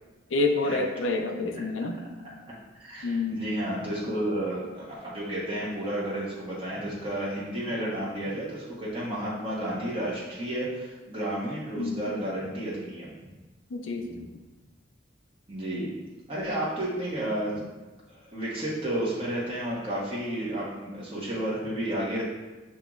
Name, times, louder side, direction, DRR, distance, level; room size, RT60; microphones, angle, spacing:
voice 1, 0.3-2.0 3.0-3.5 11.8-12.0 13.7-14.3, left 3 dB, 80° left, 4 dB, 0.5 m, -28 dB
voice 2, 2.8-13.1 15.5-15.9 16.3-17.6 18.1-22.2, right 1 dB, 30° right, -7 dB, 1.0 m, -32 dB
7.5 x 2.9 x 2.4 m, 1.2 s
head